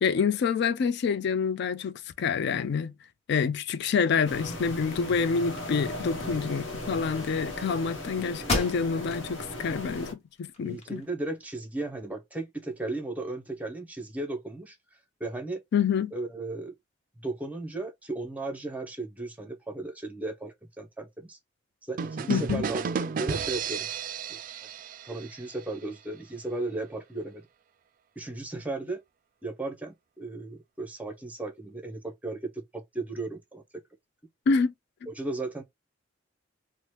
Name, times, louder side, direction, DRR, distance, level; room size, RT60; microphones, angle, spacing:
voice 1, 0.0-2.9 3.3-10.1 10.4-11.0 15.7-16.1 22.3-22.6 34.5-34.7 35.0-35.1, left 6 dB, 60° left, 0.3 m, -27 dB
sound 1, 4.2-10.1, left 1 dB, 75° left, 0.9 m, -37 dB
sound 2, 8.5-9.3 9.7-9.8 10.4-11.3, left 2 dB, 35° left, 1.0 m, -32 dB
voice 2, 10.6-14.8 15.2-15.6 16.1-16.7 17.2-21.4 21.9-23.9 24.3-24.7 25.0-27.4 28.2-29.0 29.4-33.6 35.1-35.6, right 2 dB, 10° right, 0.6 m, -35 dB
sound 3, 22.0-25.7, right 6 dB, 45° right, 0.3 m, -33 dB
2.9 x 2.0 x 3.1 m
head